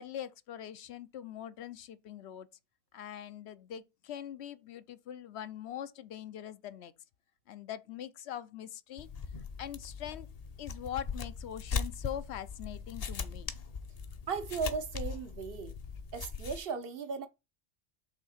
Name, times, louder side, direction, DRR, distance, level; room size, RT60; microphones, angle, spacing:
voice 1, 0.0-2.5 2.9-6.9 7.5-9.1 9.6-10.3 10.6-13.5, left 10 dB, 75° left, 0.9 m, -42 dB
sound 1, 9.0-16.6, left 5 dB, 45° left, 0.6 m, -40 dB
voice 2, 14.3-15.7 16.1-17.3, right 5 dB, 60° right, 0.9 m, -36 dB
5.6 x 3.6 x 5.6 m
omnidirectional pair, 1.2 m